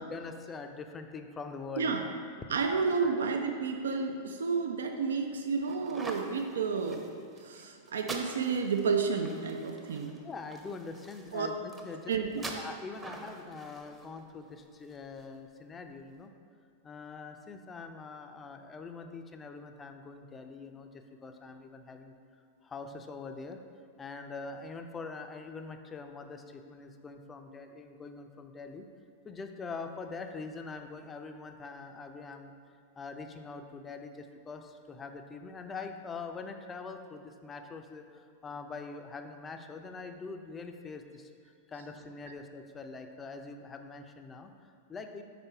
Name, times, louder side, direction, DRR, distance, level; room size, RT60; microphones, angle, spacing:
voice 1, 0.0-2.1 3.0-3.2 10.2-12.1 12.6-16.3 16.8-22.2 22.6-23.6 24.0-28.9 29.2-32.5 33.0-41.3 41.7-45.2, left 4 dB, 20° left, 6 dB, 0.4 m, -43 dB
voice 2, 2.5-7.1 7.4-10.1 11.3-11.5 12.1-12.3, right 5 dB, 70° right, 5 dB, 0.4 m, -31 dB
sound 1, 5.7-15.2, right 2 dB, 15° right, 0.7 m, -45 dB
5.1 x 4.2 x 4.5 m, 2.1 s
figure-of-eight pair, 95°, 0 cm